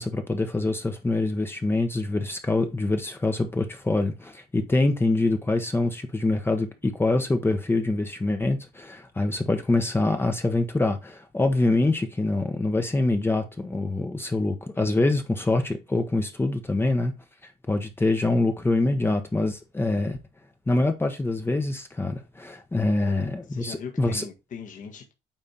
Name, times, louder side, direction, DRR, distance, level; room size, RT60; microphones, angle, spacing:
voice 1, 0.0-17.1 17.7-20.2 20.7-24.2, left 2 dB, 15° left, 1.0 m, -25 dB
voice 2, 22.9-25.1, left 6 dB, 50° left, 1.7 m, -40 dB
9.0 x 3.5 x 4.3 m
cardioid pair, 110°, 17 cm